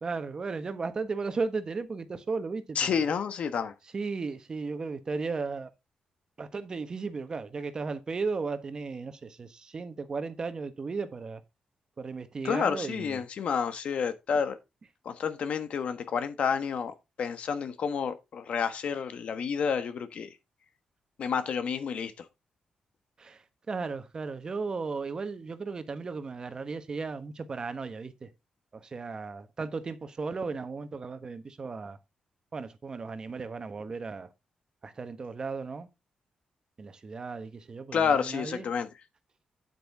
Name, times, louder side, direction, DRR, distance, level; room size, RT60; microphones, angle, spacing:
voice 1, 0.0-3.1 3.9-5.7 6.4-11.4 12.0-13.2 23.2-28.3 28.7-32.0 32.5-34.3 34.8-35.9 36.8-38.6, right 4 dB, 35° right, 1.2 m, -35 dB
voice 2, 2.7-3.7 12.4-14.6 15.0-20.3 21.2-22.2 37.9-38.9, left 6 dB, 65° left, 1.3 m, -30 dB
9.3 x 8.1 x 3.6 m
cardioid pair, 125°, 2 cm